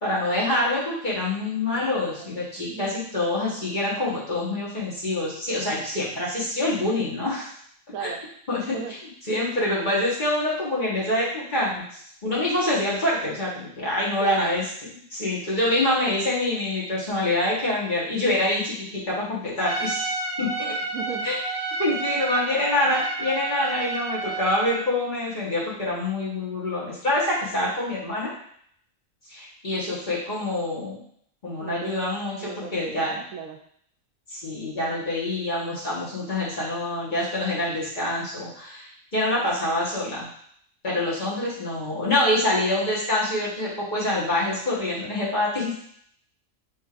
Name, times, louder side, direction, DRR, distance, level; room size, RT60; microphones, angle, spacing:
voice 1, 0.0-7.5 8.0-8.1 8.5-8.8 9.3-11.8 12.2-14.6 15.1-20.1 20.4-20.8 21.2-21.3 21.8-28.3 29.3-31.0 31.4-33.2 34.3-40.3 40.8-45.7, left 1 dB, 35° left, -6 dB, 1.4 m, -26 dB
voice 2, 1.7-3.0 7.9-8.2 8.6-8.9 14.2-14.6 15.7-15.8 20.9-21.3 31.6-32.0 32.4-33.6, right 6 dB, 80° right, 5 dB, 1.0 m, -35 dB
Trumpet, 19.6-24.8, right 3 dB, 5° right, 0.7 m, -30 dB
6.2 x 3.1 x 2.4 m, 0.65 s
omnidirectional pair, 1.4 m